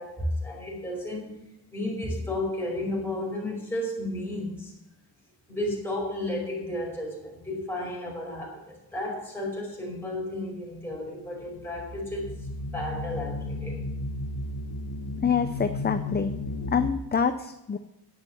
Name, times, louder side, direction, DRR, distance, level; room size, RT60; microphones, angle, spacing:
voice 1, 0.0-1.4 1.7-4.7 5.5-12.3 12.7-13.8, left 1 dB, 5° left, -3 dB, 4.9 m, -33 dB
sound 1, 11.2-16.9, left 2 dB, 65° left, 1.3 m, -34 dB
voice 2, 15.2-16.3 16.7-17.8, left 6 dB, 25° left, 8 dB, 0.5 m, -26 dB
10.5 x 8.9 x 7.0 m, 0.87 s
wide cardioid pair, 170°, 40 cm